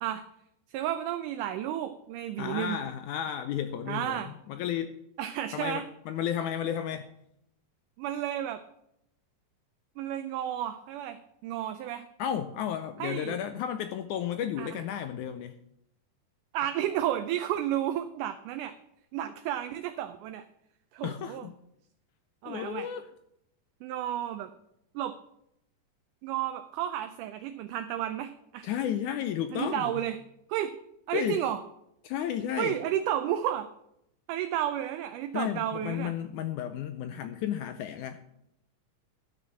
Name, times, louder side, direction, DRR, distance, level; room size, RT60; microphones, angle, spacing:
voice 1, 0.7-2.8 3.9-4.3 5.2-5.9 8.0-8.6 10.0-12.0 13.0-13.4 14.6-14.7 16.5-18.7 19.1-20.4 20.9-21.5 22.4-22.9 23.8-24.5 25.0-25.2 26.2-28.7 29.5-30.2 30.5-30.7 31.1-31.6 32.6-33.7 34.3-36.1, right 11 dB, 80° right, 9 dB, 2.0 m, -32 dB
voice 2, 2.4-5.0 5.5-7.1 12.2-15.5 21.0-21.6 22.5-23.1 28.6-30.0 31.1-31.4 32.0-32.8 35.3-38.2, left 9 dB, 80° left, 9 dB, 1.8 m, -33 dB
12.0 x 6.5 x 7.5 m, 0.78 s
omnidirectional pair, 4.0 m